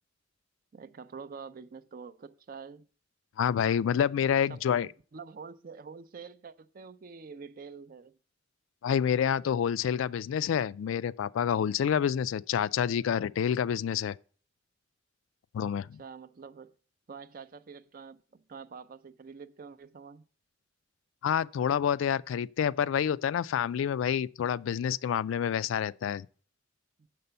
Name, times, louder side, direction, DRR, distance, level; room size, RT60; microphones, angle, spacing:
voice 1, 0.7-2.9 4.5-4.8 5.1-8.2 16.0-16.7 17.1-20.2, right 5 dB, 45° right, 0.4 m, -46 dB
voice 2, 3.4-4.9 8.8-14.2 15.5-16.0 21.2-26.3, left 8 dB, 85° left, 0.3 m, -28 dB
6.7 x 5.4 x 6.8 m
head